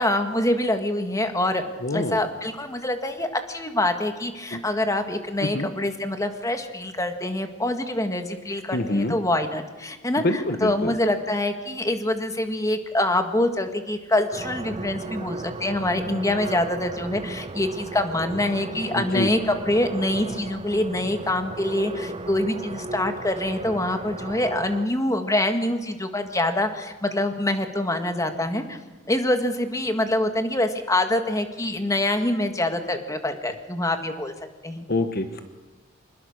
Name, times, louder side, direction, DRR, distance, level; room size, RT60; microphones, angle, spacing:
voice 1, 0.0-1.6 1.9-28.8 29.1-34.3 34.6-34.9, left 1 dB, 15° left, 6 dB, 1.8 m, -25 dB
voice 2, 1.8-2.3 4.5-4.6 5.4-5.7 8.7-9.1 10.2-10.9 18.9-19.3 34.9-35.4, left 2 dB, 50° left, 8 dB, 1.2 m, -26 dB
sound 1, 14.3-24.9, right 2 dB, 30° right, 0.7 m, -35 dB
26.0 x 20.5 x 6.6 m, 1.2 s
head